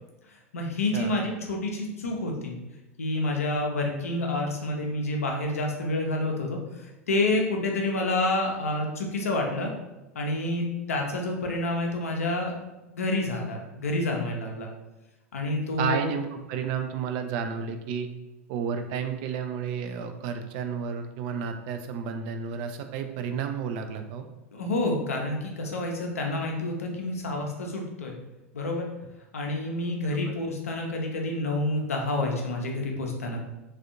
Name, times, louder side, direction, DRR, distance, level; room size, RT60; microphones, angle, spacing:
voice 1, 0.5-2.6 3.0-9.7 10.1-12.5 13.0-14.7 15.3-16.0 24.5-28.1 28.5-28.9 29.3-33.4, left 2 dB, 70° left, 1 dB, 0.6 m, -28 dB
voice 2, 15.8-18.1 18.5-24.3, right 6 dB, 45° right, 7 dB, 0.3 m, -31 dB
3.3 x 2.4 x 2.5 m, 1.0 s
figure-of-eight pair, 90°, 8 cm